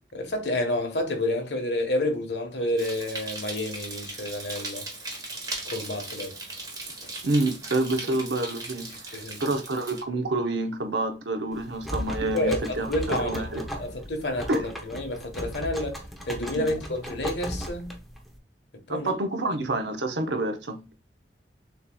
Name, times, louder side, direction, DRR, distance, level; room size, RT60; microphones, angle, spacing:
voice 1, 0.1-4.9 5.7-6.4 7.0-7.1 8.0-8.1 9.1-9.5 12.3-13.5 13.7-17.9 18.9-19.1, left 1 dB, 70° left, 1.3 m, -29 dB
sound 1, 2.8-10.0, right 2 dB, 20° right, 1.2 m, -38 dB
voice 2, 7.2-13.8 14.5-14.6 16.6-16.7 18.9-20.8, right 2 dB, 75° right, 0.8 m, -28 dB
sound 2, 11.5-18.4, equal, ahead, 0.7 m, -36 dB
6.7 x 2.9 x 2.3 m
head